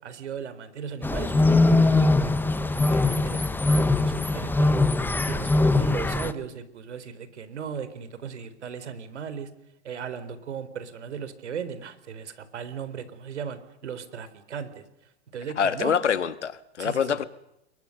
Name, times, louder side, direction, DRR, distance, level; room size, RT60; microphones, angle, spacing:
voice 1, 0.0-4.8 5.3-9.5 9.8-14.8 15.3-15.9 16.8-17.2, right 7 dB, 80° right, 4.3 m, -37 dB
sound 1, 1.0-6.3, left 2 dB, 5° left, 1.3 m, -22 dB
voice 2, 15.6-17.2, left 7 dB, 85° left, 2.0 m, -25 dB
29.5 x 23.0 x 6.7 m
hypercardioid pair, 115°, 34 cm